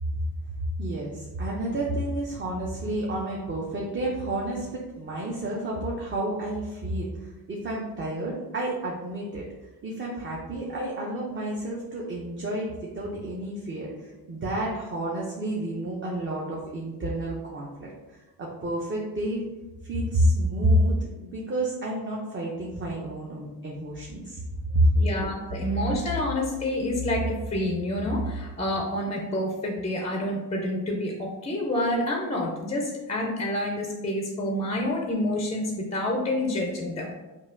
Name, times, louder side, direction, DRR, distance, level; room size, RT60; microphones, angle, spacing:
voice 1, 0.8-9.4 9.8-19.5 19.8-24.4 24.7-25.0, right 1 dB, 30° right, -4 dB, 0.5 m, -29 dB
voice 2, 25.0-37.2, left 1 dB, 15° left, 0 dB, 0.4 m, -28 dB
5.3 x 2.4 x 2.5 m, 1.1 s
cardioid pair, 130°, 41 cm